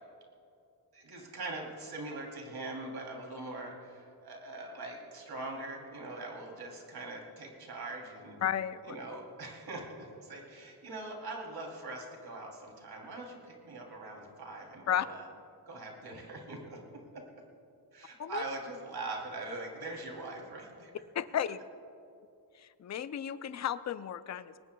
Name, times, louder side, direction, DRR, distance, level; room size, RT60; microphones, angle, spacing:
voice 1, 0.9-8.4 8.8-15.3 15.7-16.8 17.1-17.2 17.9-20.9, right 2 dB, 60° right, 0 dB, 3.2 m, -42 dB
voice 2, 8.4-9.0 14.9-15.1 18.2-18.4 21.1-21.6 22.6-24.6, left 9 dB, 40° left, 13 dB, 0.5 m, -33 dB
22.0 x 19.0 x 2.3 m, 2.6 s
wide cardioid pair, 135°, 42 cm